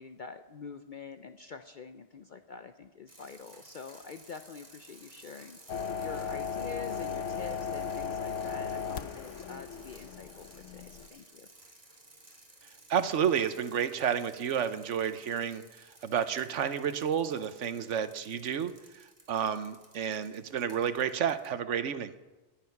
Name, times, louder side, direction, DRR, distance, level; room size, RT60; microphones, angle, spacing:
voice 1, 0.0-11.5, left 5 dB, 50° left, 9 dB, 0.7 m, -46 dB
sound 1, 3.1-21.5, right 2 dB, 25° right, 2.4 m, -56 dB
sound 2, 5.7-11.1, left 6 dB, 85° left, 1.1 m, -36 dB
voice 2, 12.9-22.1, right 8 dB, 85° right, 12 dB, 1.2 m, -31 dB
20.0 x 8.9 x 5.8 m, 1.2 s
omnidirectional pair, 1.2 m